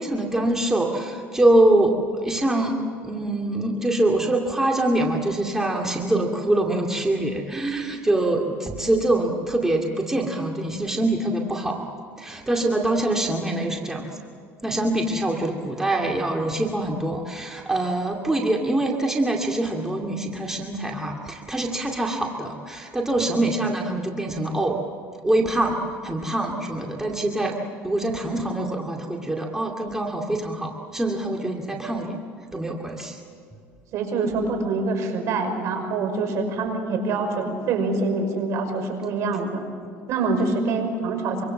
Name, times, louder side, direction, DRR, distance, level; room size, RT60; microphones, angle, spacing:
voice 1, 0.0-11.9 12.2-14.1 14.6-24.8 25.2-27.6 27.8-32.2 32.5-33.2, right 1 dB, 10° right, 1 dB, 2.4 m, -24 dB
voice 2, 33.9-39.6 40.1-41.4, right 3 dB, 60° right, 5 dB, 5.8 m, -25 dB
25.5 x 25.0 x 7.6 m, 2.3 s
cardioid pair, 125°, 6 cm